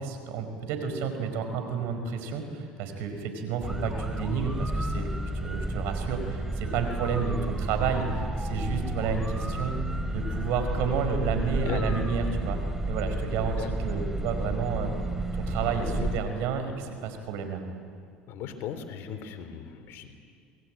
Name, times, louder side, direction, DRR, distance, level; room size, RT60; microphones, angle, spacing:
voice 1, 0.0-5.1 5.4-9.8 10.1-12.6 12.9-14.9 15.4-17.6, right 6 dB, 70° right, 7 dB, 5.0 m, -31 dB
sound 1, 3.6-16.2, right 1 dB, 5° right, 2.8 m, -31 dB
voice 2, 11.6-12.0 13.6-13.7 15.6-16.1 18.3-20.1, left 9 dB, 65° left, 8 dB, 3.3 m, -37 dB
28.0 x 20.5 x 9.1 m, 2.2 s
hypercardioid pair, 80°, 4 cm